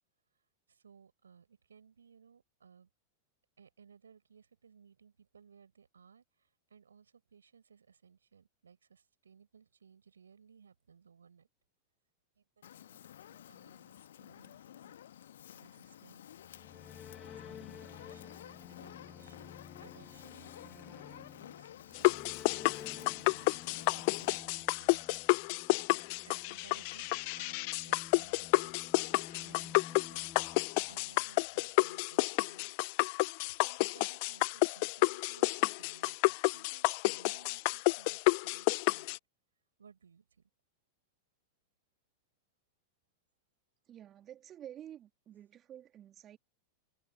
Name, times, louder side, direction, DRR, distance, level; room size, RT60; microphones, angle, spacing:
voice 1, 0.3-2.9 3.6-11.5 12.4-16.3 17.2-22.3 22.7-32.7 33.5-39.2 39.8-40.5, right 6 dB, 70° right, 5.6 m, -61 dB
Fire, 12.6-24.4, left 11 dB, 60° left, 1.7 m, -53 dB
sound 1, 16.3-31.6, left 8 dB, 25° left, 1.7 m, -52 dB
sound 2, 21.9-39.2, left 32 dB, 45° left, 0.3 m, -30 dB
voice 2, 43.9-46.4, right 11 dB, 30° right, 2.6 m, -50 dB
figure-of-eight pair, 90°, 0 cm